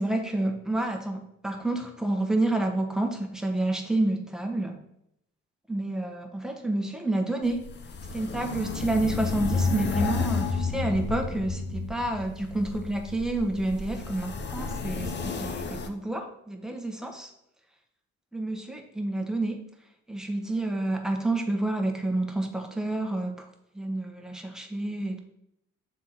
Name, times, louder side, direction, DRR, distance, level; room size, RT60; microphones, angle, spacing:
voice 1, 0.0-4.8 5.7-7.7 8.1-17.3 18.3-19.6 20.1-23.5 23.7-25.2, right 2 dB, ahead, 3 dB, 1.0 m, -29 dB
sound 1, 7.4-15.9, left 4 dB, 35° left, 0.6 m, -31 dB
7.4 x 3.6 x 4.0 m, 0.78 s
cardioid pair, 90°, 30 cm